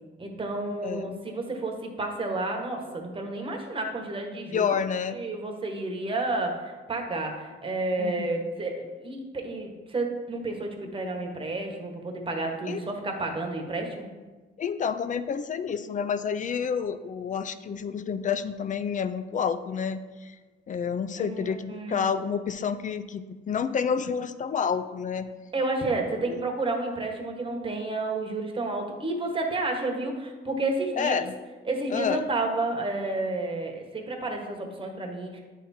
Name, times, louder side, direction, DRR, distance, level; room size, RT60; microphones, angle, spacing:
voice 1, 0.2-4.7 5.1-14.1 21.2-22.1 25.5-31.1 31.6-35.4, right 2 dB, 25° right, 2 dB, 1.3 m, -31 dB
voice 2, 0.8-1.2 4.5-5.2 8.0-8.3 12.7-12.8 14.6-20.3 20.7-25.3 26.3-26.4 31.0-31.3 31.9-32.2, left 6 dB, 40° left, 12 dB, 0.5 m, -29 dB
8.9 x 3.6 x 4.3 m, 1.3 s
cardioid pair, 90°, 20 cm